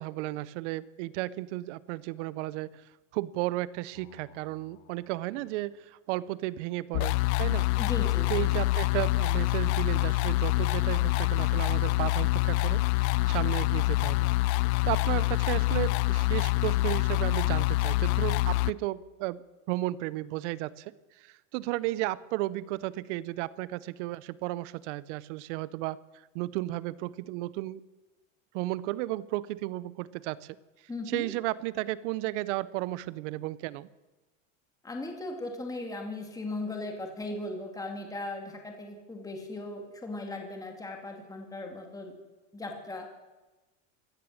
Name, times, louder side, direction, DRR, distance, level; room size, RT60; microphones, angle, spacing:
voice 1, 0.0-7.7 8.1-14.3 14.8-19.4 19.7-27.8 28.5-30.6 31.1-33.9, right 17 dB, 65° right, 19 dB, 0.8 m, -34 dB
sound 1, 6.9-18.7, left 19 dB, 60° left, 0.5 m, -26 dB
voice 2, 7.8-8.4 30.9-31.3 34.8-42.1 42.5-43.1, left 2 dB, 10° left, 2 dB, 2.3 m, -37 dB
16.5 x 13.0 x 6.5 m, 1.1 s
supercardioid pair, 120°, 39 cm